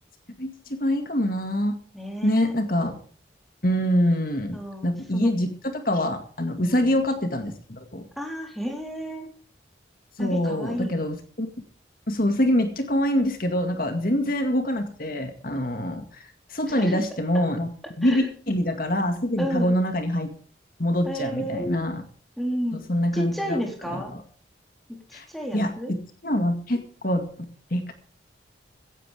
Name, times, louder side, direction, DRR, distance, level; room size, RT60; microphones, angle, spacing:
voice 1, 0.4-1.8 2.2-3.0 3.6-4.6 4.8-5.5 5.8-8.0 10.2-11.5 12.1-17.7 18.0-20.3 20.8-22.0 22.7-23.6 23.9-24.2 25.1-25.3 25.5-26.0 26.2-27.9, equal, 50° left, 6 dB, 2.1 m, -25 dB
voice 2, 1.9-2.5 4.5-5.3 6.6-6.9 8.2-9.3 10.2-11.0 14.1-14.3 16.7-17.0 18.0-18.3 19.4-19.7 21.0-21.9 22.4-22.8 23.1-24.1 25.1-26.0, equal, ahead, 2 dB, 4.0 m, -31 dB
16.5 x 16.0 x 3.6 m, 0.43 s
head